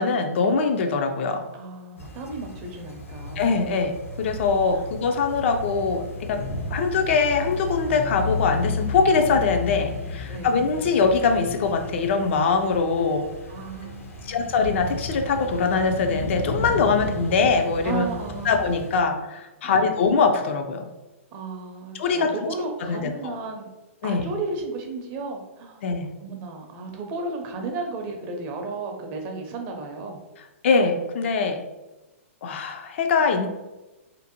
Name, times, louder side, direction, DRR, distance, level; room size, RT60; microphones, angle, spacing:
voice 1, 0.0-1.4 3.4-6.4 6.7-13.3 14.2-18.1 18.5-20.9 21.9-22.3 22.8-23.4 24.0-24.3 25.8-26.1 30.6-31.6 32.4-33.5, left 4 dB, 60° left, 6 dB, 0.3 m, -22 dB
voice 2, 1.5-3.5 4.7-4.8 10.3-10.7 13.5-14.5 17.8-18.7 19.6-19.9 21.3-23.7 24.0-25.8 26.2-30.2, right 3 dB, 35° right, 3 dB, 0.5 m, -34 dB
sound 1, 2.0-19.0, left 2 dB, 85° left, 0.7 m, -34 dB
2.5 x 2.1 x 2.8 m, 1.1 s
hypercardioid pair, 130°, 7 cm